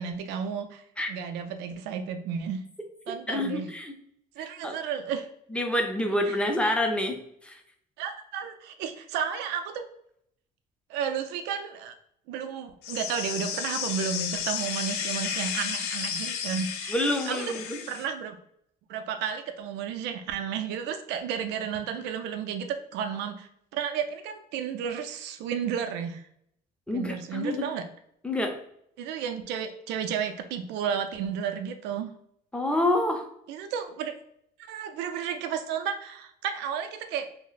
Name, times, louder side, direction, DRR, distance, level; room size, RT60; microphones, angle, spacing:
voice 1, 0.0-0.8 1.1-2.6 3.1-3.7 4.4-5.3 6.3-6.4 8.0-9.9 10.9-11.9 12.3-17.0 17.3-17.6 17.9-18.4 18.9-26.3 26.9-27.8 29.0-32.1 33.5-34.1 34.7-37.3, right 7 dB, 90° right, 7 dB, 0.4 m, -32 dB
voice 2, 3.3-3.9 4.4-4.8 5.5-7.6 16.9-17.8 26.9-27.7 28.2-28.6 32.5-33.3, left 1 dB, 5° left, 3 dB, 0.5 m, -28 dB
sound 1, 12.8-18.1, left 8 dB, 75° left, 0.4 m, -33 dB
2.4 x 2.0 x 3.8 m, 0.70 s
cardioid pair, 110°, 17 cm